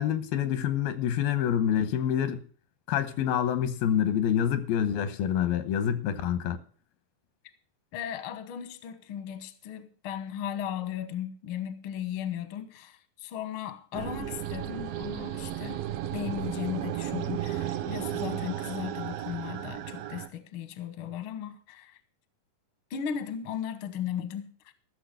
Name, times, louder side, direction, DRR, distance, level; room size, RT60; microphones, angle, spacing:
voice 1, 0.0-2.4 2.9-6.6, left 9 dB, 90° left, 2.9 m, -27 dB
voice 2, 7.9-15.8 16.1-22.0 22.9-24.7, left 9 dB, 65° left, 1.3 m, -36 dB
sound 1, 13.9-20.3, right 11 dB, 80° right, 2.5 m, -34 dB
14.5 x 6.7 x 6.6 m
omnidirectional pair, 4.2 m